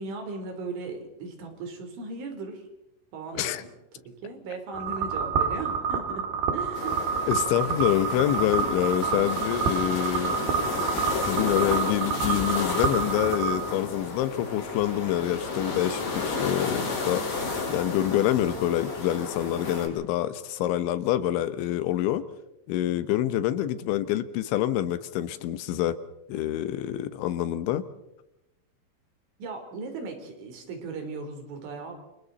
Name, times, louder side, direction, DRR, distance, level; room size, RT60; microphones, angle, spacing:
voice 1, 0.0-2.6 3.1-3.7 4.0-7.4 29.4-31.9, right 3 dB, 90° right, 4 dB, 6.2 m, -37 dB
sound 1, 4.7-13.6, right 7 dB, 60° right, 3.8 m, -28 dB
sound 2, 6.7-19.9, left 4 dB, 60° left, 8.0 m, -32 dB
voice 2, 7.3-10.4 11.2-17.2 17.7-22.2 22.7-26.0 26.3-27.9, left 12 dB, 80° left, 12 dB, 3.5 m, -26 dB
29.5 x 27.5 x 4.1 m, 0.87 s
omnidirectional pair, 5.4 m